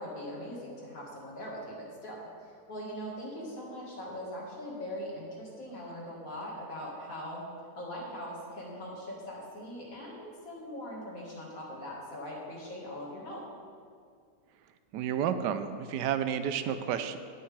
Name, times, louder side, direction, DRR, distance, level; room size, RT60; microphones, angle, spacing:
voice 1, 0.0-7.5 7.7-13.4, equal, 55° left, -4 dB, 2.2 m, -41 dB
voice 2, 14.9-17.2, right 8 dB, 85° right, 10 dB, 1.2 m, -31 dB
17.0 x 5.7 x 3.3 m, 2.2 s
omnidirectional pair, 1.8 m